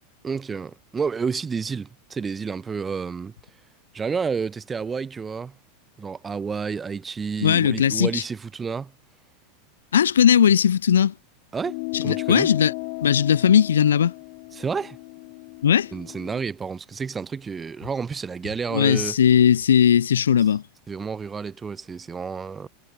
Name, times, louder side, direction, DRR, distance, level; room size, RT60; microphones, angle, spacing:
voice 1, 0.2-3.3 3.9-5.6 6.0-8.9 11.5-12.5 14.5-15.0 15.9-19.2 20.9-22.7, right 5 dB, 20° right, 6.8 m, -30 dB
voice 2, 7.4-8.2 9.9-11.1 11.9-12.7 13.0-14.1 15.6-15.9 18.7-20.6, left 8 dB, 70° left, 1.7 m, -18 dB
sound 1, 11.6-16.4, left 38 dB, 50° left, 1.9 m, -35 dB
figure-of-eight pair, 85°, 0 cm